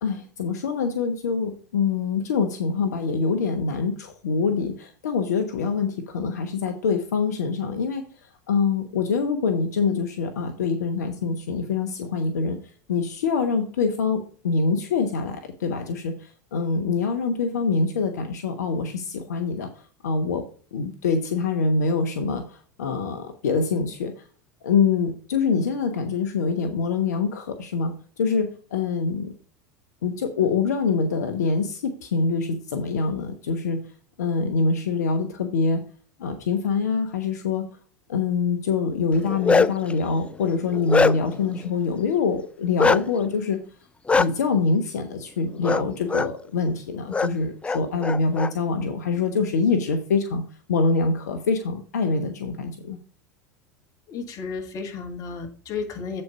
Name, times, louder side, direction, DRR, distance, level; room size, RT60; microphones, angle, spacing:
voice 1, 0.0-8.0 8.5-12.6 12.9-19.7 20.0-20.4 20.7-24.1 24.6-29.3 30.0-33.8 34.2-35.8 36.2-37.7 38.1-43.6 44.1-50.4 50.7-53.0, left 4 dB, 80° left, 6 dB, 1.0 m, -25 dB
Bark, 39.1-39.9 40.4-41.4 42.8-43.0 44.1-44.3 45.6-45.8 46.1-46.3 47.1-47.3 47.6-48.5, left 4 dB, 15° left, 0.4 m, -21 dB
voice 2, 54.1-56.2, left 5 dB, 40° left, 3 dB, 2.1 m, -33 dB
7.9 x 4.4 x 5.4 m, 0.41 s
hypercardioid pair, 90°, 9 cm